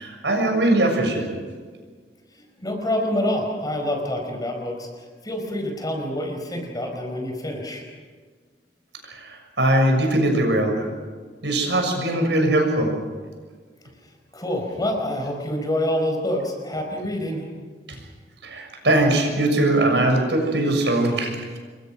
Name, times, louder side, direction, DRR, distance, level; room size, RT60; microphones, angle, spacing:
voice 1, 0.0-1.4 9.0-10.8 11.4-12.9 17.9-18.0 18.4-21.4, right 1 dB, 80° right, 3 dB, 6.7 m, -21 dB
voice 2, 2.4-7.8 14.3-17.5, left 1 dB, 20° left, 3 dB, 5.0 m, -27 dB
28.0 x 22.5 x 6.3 m, 1.5 s
head